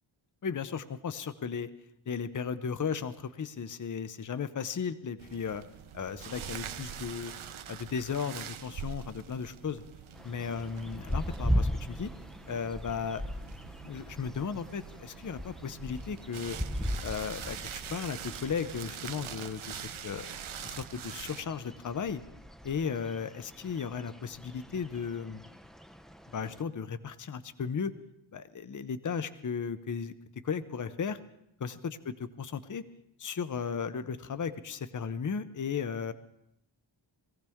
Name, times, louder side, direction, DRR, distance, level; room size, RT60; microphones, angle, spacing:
voice 1, 0.4-1.7 2.1-5.6 5.9-7.3 7.7-9.8 10.2-12.1 12.5-13.2 13.8-16.6 17.0-20.3 20.6-22.2 22.6-25.4 26.3-27.9 28.3-30.1 30.4-31.2 31.6-32.8 33.2-36.1, left 6 dB, 40° left, 12 dB, 0.7 m, -35 dB
sound 1, 5.2-21.4, right 8 dB, 85° right, 0.8 m, -44 dB
sound 2, 10.1-26.6, equal, ahead, 0.6 m, -38 dB
20.0 x 15.0 x 3.6 m, 0.80 s
wide cardioid pair, 95°, 47 cm